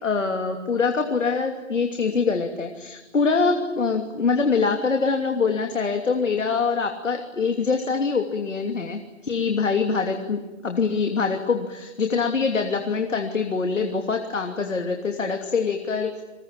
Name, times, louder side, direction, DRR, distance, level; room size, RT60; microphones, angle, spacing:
voice 1, 0.0-16.2, left 4 dB, 80° left, 4 dB, 3.0 m, -24 dB
29.0 x 21.5 x 9.0 m, 1.1 s
hypercardioid pair, 180°, 38 cm